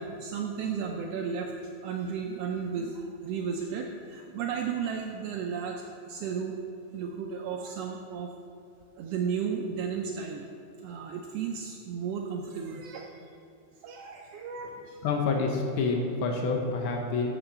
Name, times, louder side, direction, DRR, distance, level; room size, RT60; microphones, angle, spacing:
voice 1, 0.0-1.5 1.8-6.6 6.9-8.3 9.0-10.4 10.8-13.1 13.8-15.0, right 6 dB, 85° right, 2 dB, 1.3 m, -34 dB
voice 2, 15.0-17.3, left 4 dB, 90° left, 2 dB, 1.1 m, -28 dB
8.1 x 6.4 x 6.7 m, 2.7 s
omnidirectional pair, 3.5 m